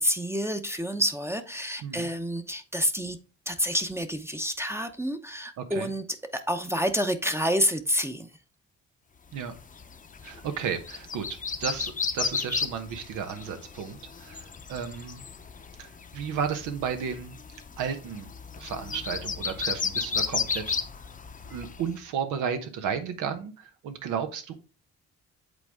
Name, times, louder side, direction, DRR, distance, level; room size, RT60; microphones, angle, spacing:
voice 1, 0.0-3.2 3.5-6.0 6.3-8.3, equal, 10° right, 0.8 m, -28 dB
voice 2, 5.6-5.9 9.3-9.5 10.2-15.2 15.8-17.4 17.8-18.3 18.6-20.8 21.5-24.5, right 7 dB, 90° right, 1.1 m, -33 dB
sound 1, 9.5-21.9, left 5 dB, 25° left, 0.8 m, -34 dB
8.2 x 4.0 x 3.5 m
cardioid pair, 90°, 30 cm